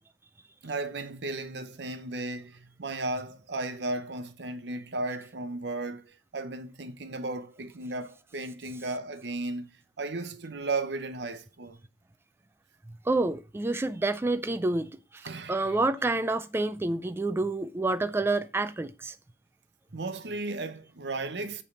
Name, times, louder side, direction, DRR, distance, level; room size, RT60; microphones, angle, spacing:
voice 1, 0.6-9.7 10.0-11.8 15.2-15.8 19.9-21.6, right 2 dB, 70° right, 0.8 m, -35 dB
voice 2, 13.1-19.2, right 2 dB, 15° right, 0.3 m, -28 dB
8.3 x 3.4 x 5.1 m
head